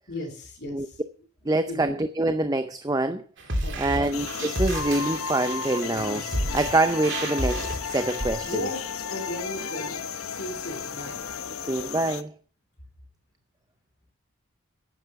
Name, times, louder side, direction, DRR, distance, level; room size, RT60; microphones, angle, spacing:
voice 1, 0.1-1.0 1.6-2.0 3.6-4.0 8.4-11.2, left 1 dB, 50° left, 3.0 m, -36 dB
voice 2, 1.5-3.2 3.8-6.3 6.5-8.6 11.6-12.3, right 2 dB, 15° right, 0.5 m, -25 dB
sound 1, 3.4-8.6, right 1 dB, 55° right, 2.9 m, -31 dB
sound 2, 4.1-12.2, left 6 dB, 75° left, 0.9 m, -34 dB
11.0 x 9.1 x 6.9 m
head